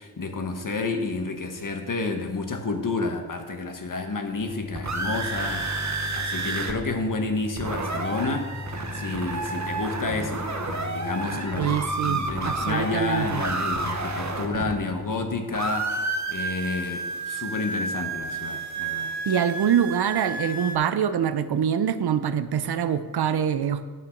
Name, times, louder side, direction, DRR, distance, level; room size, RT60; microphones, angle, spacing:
voice 1, 0.0-8.5 8.9-16.0 16.3-19.1, left 3 dB, 50° left, 5 dB, 1.4 m, -30 dB
sound 1, 4.3-15.3, left 3 dB, 35° left, 1.8 m, -38 dB
sound 2, 4.5-6.7 7.0-7.1 7.4-15.2 15.5-20.8, right 3 dB, 45° right, 1.3 m, -31 dB
voice 2, 11.6-13.4 19.3-23.9, right 8 dB, 70° right, 12 dB, 0.6 m, -25 dB
9.5 x 5.8 x 5.9 m, 1.4 s
cardioid pair, 45°, 40 cm